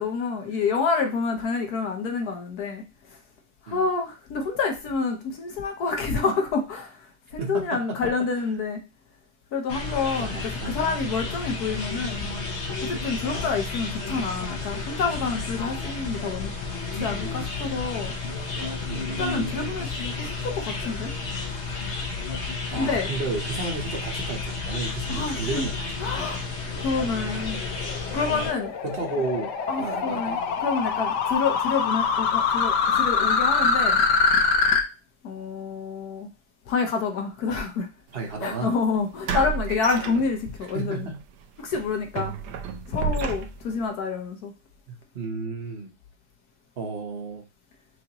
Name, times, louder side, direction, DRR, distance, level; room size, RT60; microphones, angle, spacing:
voice 1, 0.0-3.2 3.6-7.1 7.3-8.8 9.5-12.2 12.8-16.5 17.0-18.1 19.2-21.1 22.7-23.1 25.1-25.7 26.0-26.4 26.8-27.6 28.1-28.7 29.7-34.0 35.2-36.3 36.7-37.9 38.4-41.1 41.6-42.3 42.9-44.5, left 4 dB, 70° left, 1.3 m, -28 dB
voice 2, 7.4-8.5 10.2-11.1 18.9-19.7 22.7-25.8 26.2-26.4 28.8-30.6 38.1-38.7 40.7-41.2 44.9-45.9 46.8-47.5, right 3 dB, 45° right, 1.0 m, -33 dB
sound 1, 9.7-28.5, left 4 dB, 50° left, 1.0 m, -32 dB
sound 2, 26.8-34.8, left 5 dB, 90° left, 1.3 m, -24 dB
sound 3, 38.1-38.3 39.3-40.7 41.1-41.3 41.7-43.8, right 6 dB, 85° right, 1.2 m, -31 dB
6.3 x 2.7 x 2.9 m
omnidirectional pair, 1.8 m